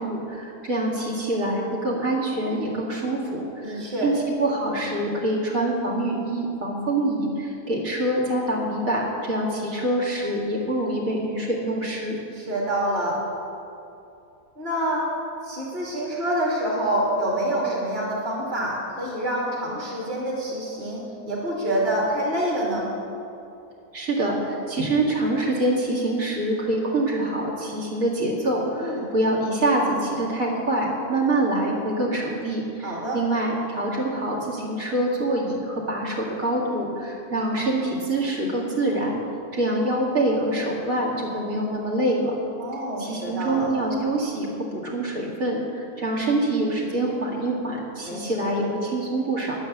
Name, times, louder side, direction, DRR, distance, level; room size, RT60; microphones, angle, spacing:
voice 1, 0.0-4.1 4.4-12.2 23.9-39.2 39.5-42.4 43.0-49.5, right 1 dB, 60° right, -3 dB, 2.8 m, -25 dB
voice 2, 3.6-4.1 12.3-13.2 14.6-15.1 15.4-22.9 28.7-29.1 32.8-33.2 42.6-43.7 48.1-48.5, right 1 dB, 30° right, -5 dB, 2.8 m, -27 dB
10.5 x 9.0 x 8.2 m, 2.7 s
omnidirectional pair, 1.6 m